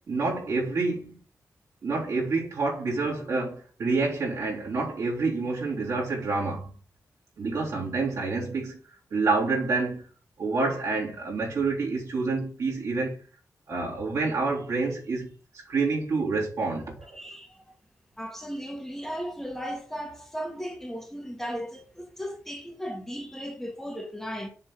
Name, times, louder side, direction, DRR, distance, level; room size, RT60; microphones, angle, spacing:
voice 1, 0.1-1.2 1.8-6.7 7.4-8.8 9.1-10.1 10.4-13.2 13.7-17.1, right 3 dB, 70° right, 3.6 m, -28 dB
voice 2, 17.1-17.6 18.2-24.5, equal, 5° left, 2.0 m, -36 dB
7.4 x 4.3 x 6.3 m
wide cardioid pair, 140°, 6 cm